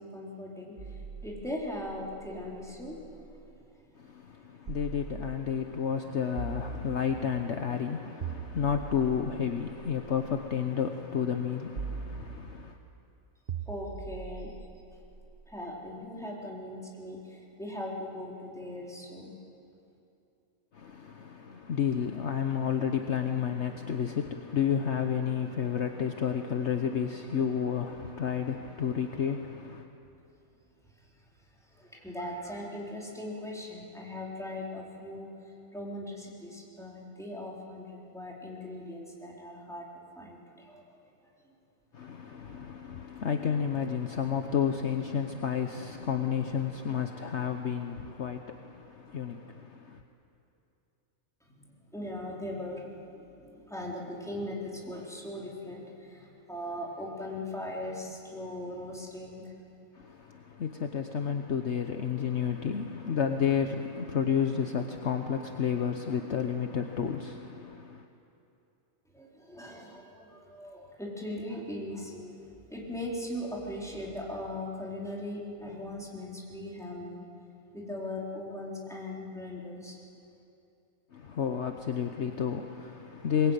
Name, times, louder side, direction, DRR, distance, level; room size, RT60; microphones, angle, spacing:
voice 1, 0.0-3.6 13.7-14.6 15.5-19.3 31.7-41.0 41.5-41.6 51.6-59.5 69.1-77.3 77.7-80.0, left 1 dB, ahead, 4.1 m, -39 dB
sound 1, 0.8-3.5 4.7-5.7 6.4-7.5 8.2-10.5 11.8-12.9 13.5-15.6, right 6 dB, 45° right, 1.0 m, -42 dB
voice 2, 4.0-12.8 20.7-29.9 41.9-50.0 59.9-68.1 81.1-83.5, left 7 dB, 55° left, 1.2 m, -31 dB
23.0 x 21.0 x 9.1 m
omnidirectional pair, 1.4 m